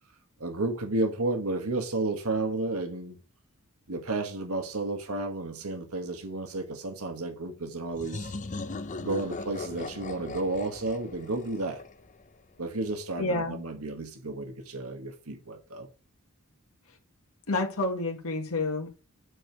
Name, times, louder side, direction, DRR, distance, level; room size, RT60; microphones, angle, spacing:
voice 1, 0.4-3.2 3.9-8.3 9.0-11.8 12.6-15.9, right 2 dB, 80° right, 1.7 m, -32 dB
sound 1, 7.9-12.5, left 3 dB, 35° left, 0.7 m, -39 dB
voice 2, 13.2-13.6 17.5-18.9, left 2 dB, 75° left, 1.7 m, -29 dB
8.8 x 4.8 x 4.7 m
head